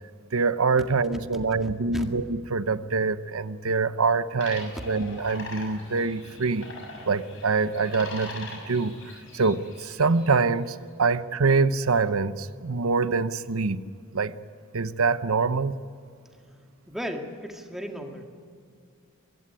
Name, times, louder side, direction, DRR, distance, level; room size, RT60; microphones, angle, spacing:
voice 1, 0.3-6.7 7.1-13.8 14.1-14.3 14.7-15.7, right 4 dB, 85° right, 14 dB, 0.8 m, -25 dB
voice 2, 1.6-2.0 16.9-18.3, equal, ahead, 3 dB, 2.0 m, -35 dB
sound 1, 4.4-10.5, left 3 dB, 65° left, 6.4 m, -42 dB
23.5 x 15.5 x 9.8 m, 2.3 s
head